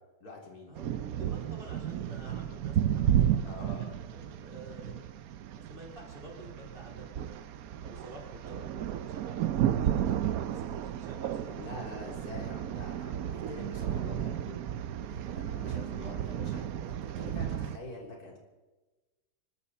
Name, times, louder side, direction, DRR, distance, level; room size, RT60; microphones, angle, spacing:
voice 1, 0.2-0.8 3.4-3.9 11.5-14.6 15.1-18.4, left 2 dB, 75° left, -1 dB, 4.0 m, -45 dB
sound 1, 0.8-17.8, right 10 dB, 70° right, 1.1 m, -33 dB
voice 2, 1.1-5.0 5.5-7.5 7.8-11.9, right 1 dB, 35° right, -2 dB, 4.6 m, -50 dB
24.5 x 14.0 x 4.2 m, 1.2 s
omnidirectional pair, 1.6 m